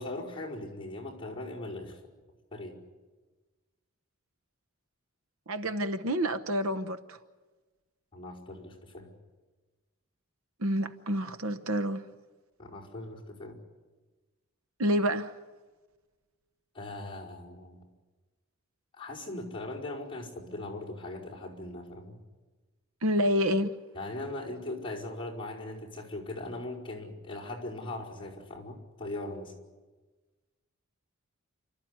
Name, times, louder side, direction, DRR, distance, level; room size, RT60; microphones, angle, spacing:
voice 1, 0.0-2.0 2.5-2.8 8.1-9.1 12.6-13.6 16.7-17.8 19.0-22.2 23.9-29.5, left 2 dB, 25° left, 5.1 m, -39 dB
voice 2, 5.5-7.2 10.6-12.0 14.8-15.3 23.0-23.7, equal, 70° right, 1.1 m, -28 dB
29.5 x 13.5 x 9.6 m
head